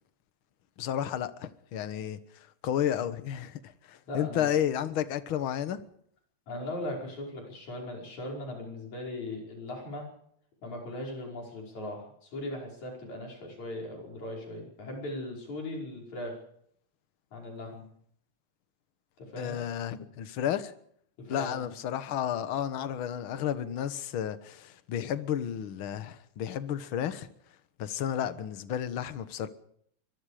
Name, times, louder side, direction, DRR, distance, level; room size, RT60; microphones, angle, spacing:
voice 1, 0.8-2.2 2.6-3.6 3.9-5.8 19.4-20.7 21.3-27.3 27.8-29.5, left 10 dB, 55° left, 1.7 m, -32 dB
voice 2, 4.1-4.5 6.5-10.1 10.6-16.4 17.3-17.8 19.2-19.6 21.2-21.8, left 1 dB, 70° left, 6.8 m, -39 dB
25.0 x 22.0 x 5.0 m
omnidirectional pair, 3.4 m